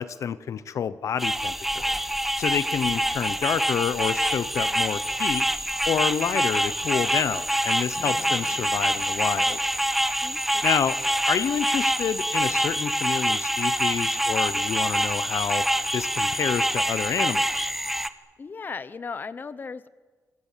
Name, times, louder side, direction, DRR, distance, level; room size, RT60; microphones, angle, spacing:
voice 1, 0.0-1.9 2.4-5.4 5.9-9.6 10.6-11.0 11.3-15.7 15.9-17.7, left 8 dB, 60° left, 15 dB, 0.9 m, -28 dB
sound 1, 1.2-18.1, right 1 dB, 5° right, 1.0 m, -26 dB
sound 2, 8.0-12.1, left 8 dB, 80° left, 2.6 m, -50 dB
voice 2, 10.2-10.6 18.4-19.9, left 5 dB, 35° left, 15 dB, 1.0 m, -36 dB
27.5 x 23.5 x 7.5 m, 1.4 s
cardioid pair, 130°, 6 cm